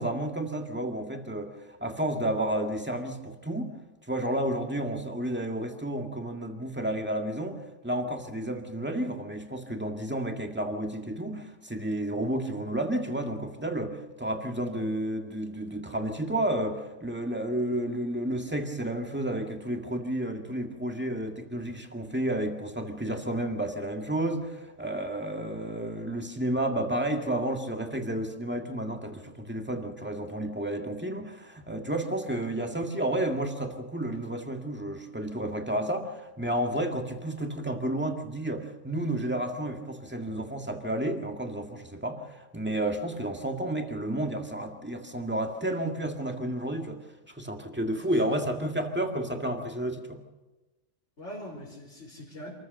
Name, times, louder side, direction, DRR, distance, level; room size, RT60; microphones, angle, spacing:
voice 1, 0.0-3.7 4.1-7.6 7.8-47.0 47.3-50.2, right 1 dB, 10° right, 3 dB, 1.9 m, -31 dB
voice 2, 47.8-48.3 51.2-52.5, equal, 70° left, -6 dB, 4.2 m, -43 dB
27.0 x 14.5 x 6.7 m, 1.1 s
omnidirectional pair, 1.3 m